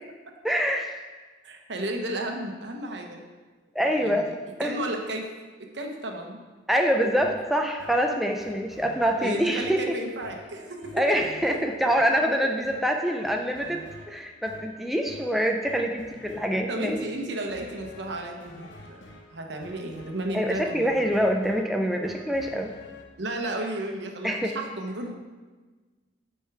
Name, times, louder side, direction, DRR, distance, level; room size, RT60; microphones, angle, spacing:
voice 1, 0.4-0.9 3.7-4.3 4.6-4.7 6.7-9.9 10.9-17.0 20.3-22.7 24.2-24.6, equal, ahead, 2 dB, 0.4 m, -25 dB
voice 2, 1.4-3.2 3.9-4.2 4.6-5.3 5.6-6.4 9.2-10.9 12.0-12.1 16.7-19.0 19.3-21.0 23.2-25.1, right 1 dB, 70° right, 2 dB, 1.0 m, -33 dB
sound 1, 7.2-23.0, left 1 dB, 90° left, 0.9 m, -48 dB
8.0 x 4.5 x 4.8 m, 1.3 s
head